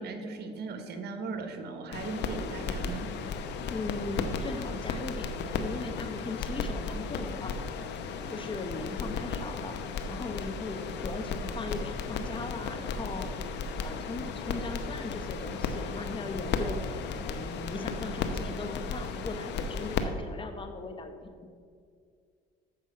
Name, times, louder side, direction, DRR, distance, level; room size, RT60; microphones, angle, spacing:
voice 1, 0.0-3.1, right 4 dB, 55° right, 6 dB, 1.2 m, -38 dB
sound 1, 1.9-20.0, left 5 dB, 60° left, 0.8 m, -35 dB
voice 2, 3.7-7.9 8.3-9.7 10.1-13.3 13.8-16.8 17.2-21.5, left 3 dB, 25° left, 6 dB, 1.0 m, -38 dB
7.4 x 5.3 x 6.4 m, 2.2 s
supercardioid pair, 90°, 20 cm